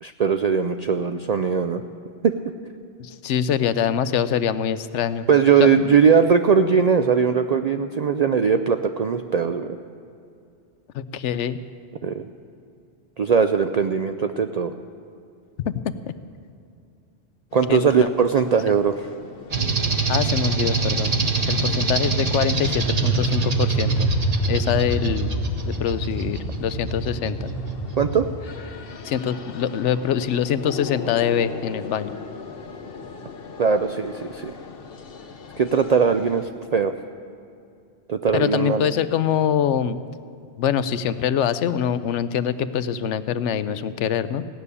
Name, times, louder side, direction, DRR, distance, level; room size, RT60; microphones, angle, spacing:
voice 1, 0.0-1.8 2.2-2.3 5.3-9.8 12.0-12.2 13.2-14.7 17.5-19.1 28.0-28.3 33.6-34.6 35.6-36.9 38.1-38.9, right 6 dB, 65° right, 8 dB, 0.4 m, -20 dB
voice 2, 3.0-5.2 5.6-6.0 10.9-11.6 15.6-16.1 17.7-18.1 20.1-21.1 21.5-24.1 24.5-25.3 25.6-27.5 29.0-32.1 38.3-40.0 40.6-44.5, left 9 dB, 80° left, 13 dB, 0.9 m, -24 dB
sound 1, 17.5-36.5, left 5 dB, 55° left, 1.0 m, -40 dB
sound 2, 19.5-28.3, right 3 dB, 35° right, 1.0 m, -24 dB
16.5 x 6.9 x 9.7 m, 2.5 s
omnidirectional pair, 1.2 m